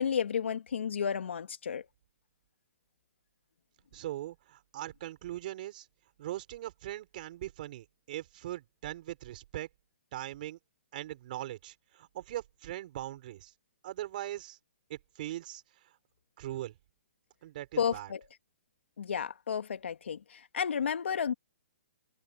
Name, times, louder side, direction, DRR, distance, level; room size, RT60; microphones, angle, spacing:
voice 1, 0.0-1.8 17.8-18.2 19.0-21.3, left 7 dB, 75° left, 2.5 m, -32 dB
voice 2, 3.9-5.9 6.2-9.7 10.1-10.6 10.9-13.5 13.8-14.6 14.9-15.6 16.4-16.7 17.4-18.1, right 14 dB, 45° right, 4.8 m, -40 dB
hypercardioid pair, 150°, 6 cm